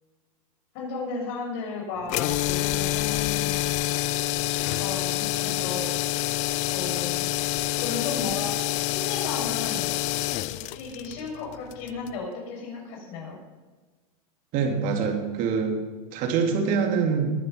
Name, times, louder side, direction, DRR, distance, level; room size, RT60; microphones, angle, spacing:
voice 1, 0.7-3.6 4.8-6.2 6.7-7.2 7.8-9.9 10.4-13.4, left 4 dB, 55° left, 0 dB, 6.2 m, -35 dB
sound 1, 2.1-12.2, left 16 dB, 40° left, 0.5 m, -27 dB
voice 2, 14.5-15.8 16.1-17.3, right 5 dB, 45° right, 2 dB, 3.2 m, -24 dB
21.0 x 11.0 x 5.5 m, 1.3 s
supercardioid pair, 145°, 19 cm